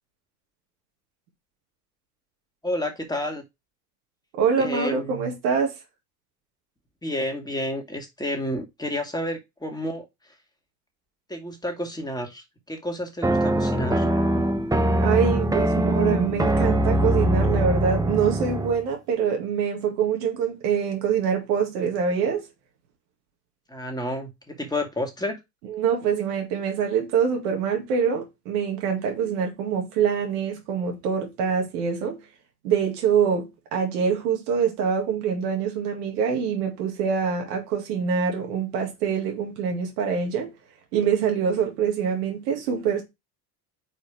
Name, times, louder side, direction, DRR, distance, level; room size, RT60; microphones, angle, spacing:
voice 1, 2.6-3.4 4.6-5.3 7.0-10.0 11.3-14.1 23.7-25.4, left 1 dB, 10° left, 2.1 m, -30 dB
voice 2, 4.3-5.7 15.0-22.5 25.7-32.2 32.6-40.5 40.9-43.0, right 7 dB, 75° right, 2.3 m, -25 dB
sound 1, 13.2-18.8, right 1 dB, 10° right, 1.1 m, -22 dB
5.3 x 4.3 x 5.0 m
hypercardioid pair, 80°, 46 cm